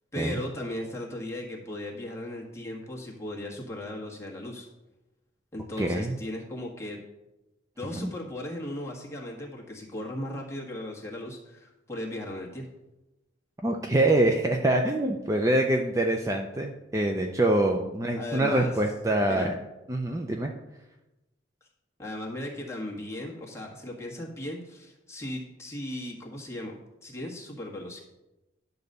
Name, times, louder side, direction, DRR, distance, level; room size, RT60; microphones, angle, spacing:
voice 1, 0.1-4.7 5.5-7.0 7.8-12.7 18.2-18.8 19.3-19.5 22.0-26.7 27.0-28.0, left 1 dB, 15° left, -2 dB, 1.6 m, -37 dB
voice 2, 5.8-6.2 8.0-8.1 13.6-19.6 19.9-20.5, right 1 dB, 15° right, 3 dB, 0.5 m, -25 dB
10.5 x 4.0 x 6.7 m, 0.99 s
head